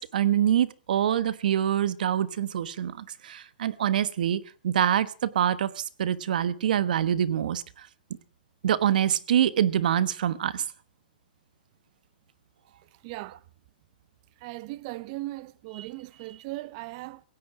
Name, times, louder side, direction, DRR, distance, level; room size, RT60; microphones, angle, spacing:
voice 1, 0.0-7.6 8.6-10.6 15.8-15.9, right 10 dB, 70° right, 1.2 m, -25 dB
voice 2, 13.0-13.4 14.4-17.2, right 19 dB, 45° right, 0.8 m, -38 dB
17.0 x 16.5 x 4.9 m
hypercardioid pair, 135°, 5 cm